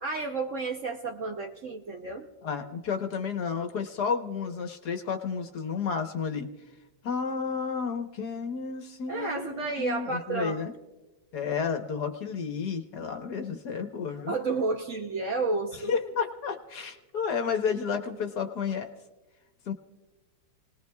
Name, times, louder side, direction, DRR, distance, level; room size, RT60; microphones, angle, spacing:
voice 1, 0.0-2.3 9.1-10.6 14.3-15.9, right 3 dB, 55° right, 3 dB, 0.9 m, -31 dB
voice 2, 2.4-6.5 7.0-10.7 11.3-14.3 15.9-18.9 19.7-19.8, left 6 dB, 60° left, 6 dB, 1.5 m, -31 dB
30.0 x 19.0 x 2.3 m, 1.1 s
omnidirectional pair, 2.0 m